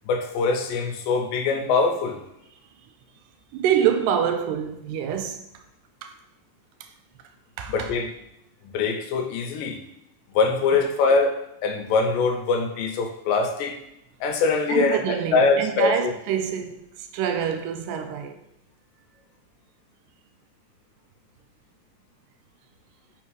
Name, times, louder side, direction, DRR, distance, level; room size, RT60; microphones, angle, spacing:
voice 1, 0.1-2.2 7.7-8.1 8.6-9.8 10.3-11.3 11.6-13.8 14.2-16.1, left 4 dB, 80° left, 2.3 m, -23 dB
voice 2, 3.5-5.4 6.0-6.1 7.6-7.9 14.7-16.9 17.1-18.4, right 8 dB, 80° right, 2.0 m, -25 dB
5.7 x 3.5 x 4.6 m
omnidirectional pair, 4.1 m